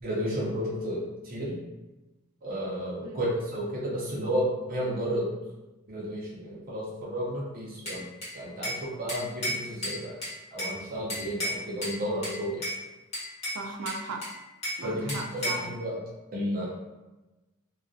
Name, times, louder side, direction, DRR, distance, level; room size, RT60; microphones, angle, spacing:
voice 1, 0.0-1.6 2.4-5.3 5.9-8.0 8.3-10.2 10.5-12.7 14.8-16.0 16.3-16.7, equal, 45° right, -6 dB, 0.6 m, -32 dB
Bell / Glass, 7.9-8.8 9.1-10.8 11.1-12.0 12.2-12.8 13.1-14.8 15.1-15.7, equal, 30° left, 1.0 m, -33 dB
voice 2, 13.5-14.3 14.8-15.8, right 3 dB, 90° right, 2 dB, 0.4 m, -37 dB
2.3 x 2.1 x 2.5 m, 1.1 s
head